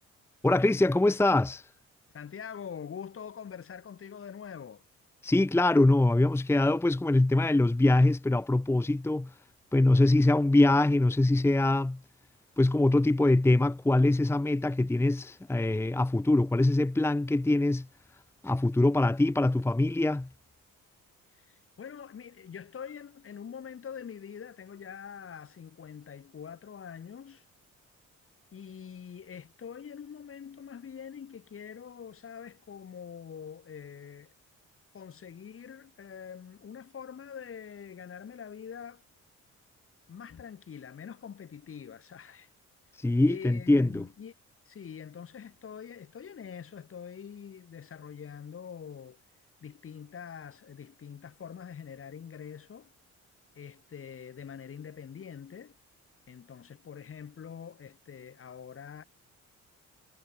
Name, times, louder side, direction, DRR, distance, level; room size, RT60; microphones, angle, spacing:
voice 1, 0.4-1.7 5.2-9.3 9.7-12.0 12.6-17.9 18.4-20.3 43.0-44.0, left 2 dB, 10° left, 0.8 m, -23 dB
voice 2, 2.1-4.8 21.3-27.4 28.5-34.3 34.9-39.0 40.1-42.5 43.2-44.3 44.7-49.2 49.6-52.9 53.5-55.8 56.3-59.0, left 7 dB, 45° left, 2.4 m, -44 dB
cardioid pair, 90°, 30 cm